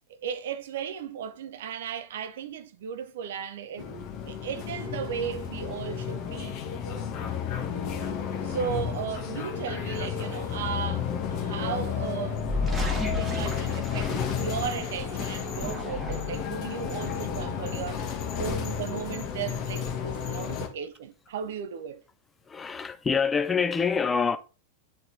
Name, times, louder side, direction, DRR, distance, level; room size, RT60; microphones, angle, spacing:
voice 1, 0.2-3.9 4.3-6.6 8.4-12.5 13.2-22.0, right 8 dB, 55° right, 0.6 m, -35 dB
sound 1, 3.8-20.7, left 7 dB, 40° left, 1.3 m, -32 dB
sound 2, 12.4-14.9 15.4-16.5, left 2 dB, 15° right, 1.9 m, -32 dB
voice 2, 22.5-24.4, left 5 dB, 15° left, 0.6 m, -26 dB
9.5 x 4.3 x 2.6 m
figure-of-eight pair, 90°, 0 cm